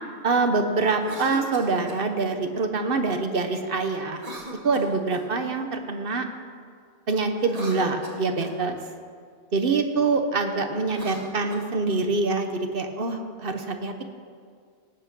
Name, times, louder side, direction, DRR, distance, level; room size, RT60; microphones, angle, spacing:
voice 1, 0.2-4.2 4.6-6.3 7.1-8.8 9.5-14.0, right 3 dB, 60° right, 6 dB, 1.2 m, -25 dB
Cough, 1.0-2.1 4.1-5.4 7.3-8.6 10.8-12.0, right 1 dB, 35° right, 1.5 m, -40 dB
18.0 x 8.1 x 6.2 m, 2.1 s
omnidirectional pair, 1.1 m